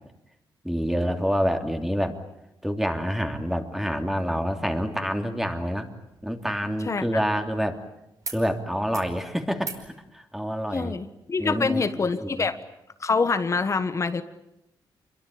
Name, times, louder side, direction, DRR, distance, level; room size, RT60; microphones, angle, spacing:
voice 1, 0.6-2.2 2.6-5.9 6.2-7.8 8.3-10.9 11.4-11.8 12.2-12.5, equal, 5° right, 5 dB, 3.0 m, -27 dB
sound 1, 8.2-8.4 8.7-9.1 9.6-9.9 11.2-11.3, right 4 dB, 40° right, 5.2 m, -41 dB
voice 2, 10.7-12.6 13.0-14.2, left 4 dB, 35° left, 11 dB, 1.4 m, -25 dB
27.5 x 22.5 x 8.7 m, 0.85 s
cardioid pair, 110°, 9 cm